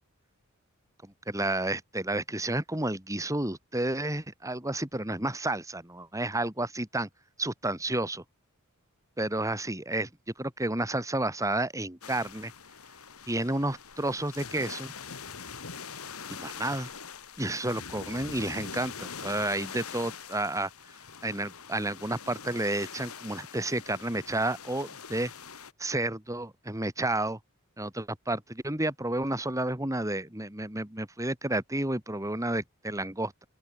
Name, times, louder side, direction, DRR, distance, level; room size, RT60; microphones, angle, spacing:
voice 1, 1.0-7.1 7.4-8.2 9.2-10.1 10.4-12.5 13.3-14.9 16.3-16.9 17.4-20.7 21.2-25.3 25.8-27.4 27.8-33.3, right 1 dB, 15° right, 2.9 m, -31 dB
sound 1, 12.0-25.7, left 6 dB, 80° left, 2.7 m, -43 dB
open air
head